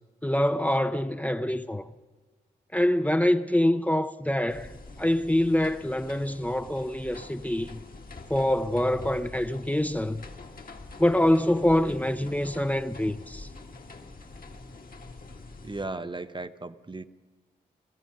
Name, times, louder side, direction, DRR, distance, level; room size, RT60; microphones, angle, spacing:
voice 1, 0.2-1.9 2.7-4.7 5.0-7.8 8.3-10.2 11.0-13.5, left 1 dB, 10° left, 0.7 m, -25 dB
sound 1, 4.5-15.9, left 3 dB, 55° left, 1.9 m, -46 dB
voice 2, 15.6-17.0, right 2 dB, 25° right, 0.8 m, -36 dB
18.5 x 14.0 x 5.4 m
supercardioid pair, 40°, 18 cm